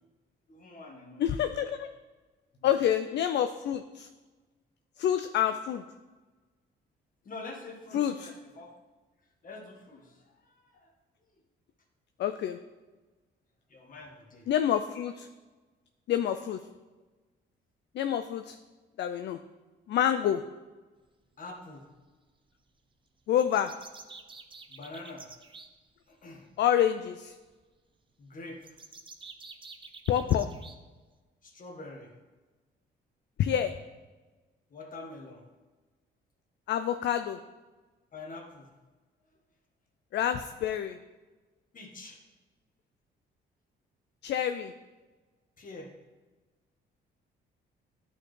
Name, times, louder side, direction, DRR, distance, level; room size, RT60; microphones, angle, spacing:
voice 1, 0.5-1.4 2.5-2.7 7.2-8.7 9.4-10.9 13.7-14.5 21.4-21.9 24.7-25.3 26.1-26.5 28.2-28.8 31.4-32.1 34.7-35.5 38.1-38.7 41.7-42.2 45.6-45.9, left 2 dB, 45° left, 1 dB, 1.5 m, -45 dB
voice 2, 1.2-1.9 2.6-4.1 5.0-5.8 7.9-8.3 12.2-12.6 14.5-15.3 16.1-16.6 17.9-18.6 19.0-19.4 19.9-20.4 23.3-23.7 26.6-27.4 30.1-30.6 33.4-33.8 36.7-37.4 40.1-41.0 44.2-44.7, left 10 dB, 60° left, 9 dB, 0.4 m, -27 dB
sound 1, 23.3-25.7 28.6-30.8, right 4 dB, 25° right, 0.6 m, -48 dB
10.5 x 4.3 x 3.2 m, 1.2 s
cardioid pair, 90°, 20 cm